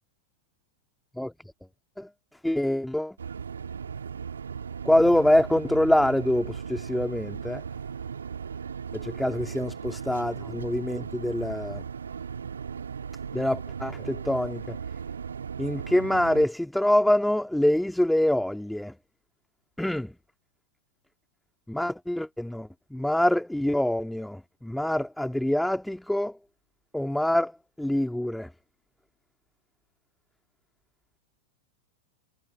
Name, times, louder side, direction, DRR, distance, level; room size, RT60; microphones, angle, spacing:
voice 1, 2.4-3.2 4.8-7.6 8.9-11.9 13.3-14.8 15.6-19.0 19.8-20.1 21.7-26.4 26.9-28.5, left 1 dB, ahead, 3.6 m, -25 dB
sound 1, 3.2-16.5, right 6 dB, 70° right, 2.6 m, -37 dB
figure-of-eight pair, 90°, 0 cm